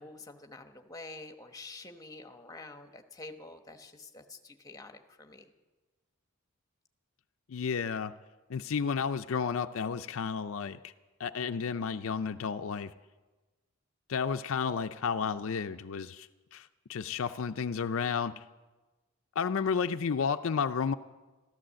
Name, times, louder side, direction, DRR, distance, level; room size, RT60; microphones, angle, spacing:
voice 1, 0.0-5.5, left 2 dB, 15° left, 6 dB, 1.0 m, -48 dB
voice 2, 7.5-8.1 8.5-10.9 11.2-12.9 14.1-18.4 19.4-20.9, left 6 dB, 65° left, 9 dB, 0.4 m, -32 dB
14.0 x 13.0 x 7.5 m, 1.2 s
head